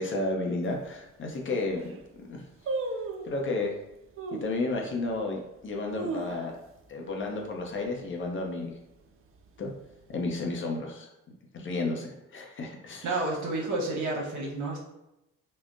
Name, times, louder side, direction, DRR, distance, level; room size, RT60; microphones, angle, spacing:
voice 1, 0.0-2.0 2.3-2.4 3.3-3.7 4.3-6.5 6.9-8.7 9.6-9.7 10.1-11.1 11.5-13.2, left 2 dB, 40° left, 1 dB, 0.6 m, -32 dB
sound 1, 0.6-0.7 1.3-1.4 1.7-2.0 2.7-3.4 4.2-4.6 5.1-5.2 5.7-6.8 7.1-7.2 7.6-7.9 8.3-8.7 9.3-10.1 10.3-10.4, right 3 dB, 45° right, 0.4 m, -35 dB
voice 2, 13.0-14.8, right 2 dB, 75° right, -2 dB, 0.9 m, -30 dB
3.6 x 2.1 x 2.5 m, 0.91 s
cardioid pair, 90°, 30 cm